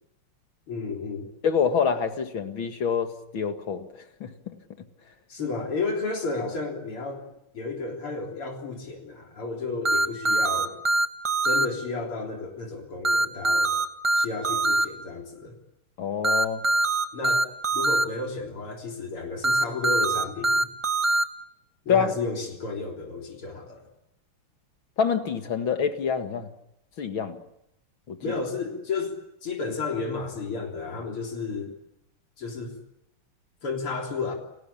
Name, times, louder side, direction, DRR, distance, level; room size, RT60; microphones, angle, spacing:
voice 1, 0.7-1.3 5.3-7.3 7.5-10.8 11.4-13.7 14.1-15.5 17.1-20.7 21.9-23.9 28.2-29.2 29.4-31.7 32.4-32.8 33.6-34.3, left 4 dB, 90° left, 4.5 m, -32 dB
voice 2, 1.4-4.6 16.0-16.6 21.9-22.1 25.0-26.5 27.0-27.4 28.1-28.2, left 6 dB, 65° left, 2.6 m, -26 dB
sound 1, 9.8-11.7 13.0-14.9 16.2-18.0 19.4-21.2, right 2 dB, 20° right, 1.0 m, -22 dB
30.0 x 19.5 x 8.6 m
omnidirectional pair, 2.3 m